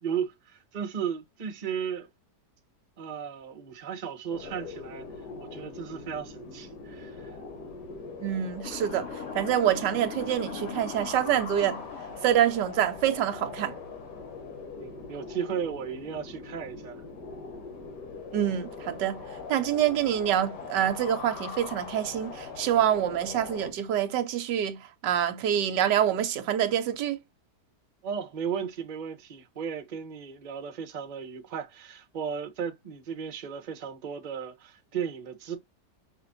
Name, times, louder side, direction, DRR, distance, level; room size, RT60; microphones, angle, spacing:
voice 1, 0.0-2.1 3.0-5.1 5.4-7.4 14.8-17.0 28.0-35.6, right 7 dB, 35° right, 0.8 m, -35 dB
sound 1, 4.3-23.7, left 4 dB, 75° left, 1.9 m, -41 dB
voice 2, 8.2-11.8 12.2-13.7 18.3-19.2 19.5-27.2, right 10 dB, 90° right, 1.4 m, -26 dB
Motor vehicle (road) / Siren, 8.6-12.8, left 5 dB, 35° left, 1.6 m, -41 dB
5.7 x 2.5 x 2.6 m
omnidirectional pair, 1.8 m